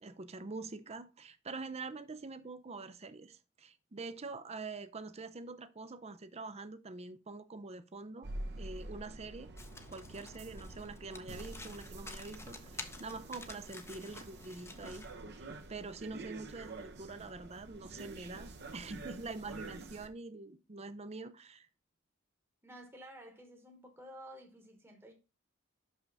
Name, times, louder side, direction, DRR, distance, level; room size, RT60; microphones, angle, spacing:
voice 1, 0.0-8.3 8.6-9.5 9.9-15.0 15.4-21.7, right 3 dB, 30° right, 0.6 m, -45 dB
sound 1, 8.2-20.1, right 2 dB, 55° right, 0.9 m, -48 dB
Domestic sounds home sounds, 9.6-15.2, left 3 dB, 15° left, 0.7 m, -50 dB
voice 2, 22.6-25.1, equal, 10° right, 1.2 m, -52 dB
6.1 x 5.6 x 4.0 m
head